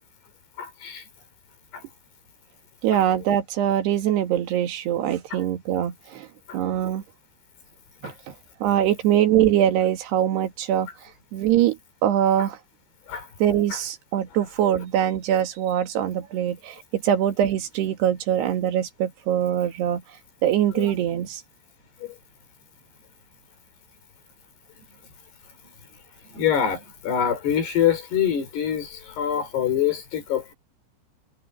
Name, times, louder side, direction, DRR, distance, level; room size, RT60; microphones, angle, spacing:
voice 1, 0.6-1.0 1.7-1.8 5.3-5.4 6.5-6.6 8.0-8.1 13.1-13.3 13.7-13.8 20.7-20.9 22.0-22.2 26.3-30.5, left 9 dB, 85° left, 7.2 m, -25 dB
voice 2, 2.8-6.3 6.5-7.0 8.0-8.1 8.6-10.9 11.3-11.8 12.0-12.6 13.4-20.0 20.4-21.4, right 11 dB, 90° right, 4.0 m, -23 dB
omnidirectional pair, 4.6 m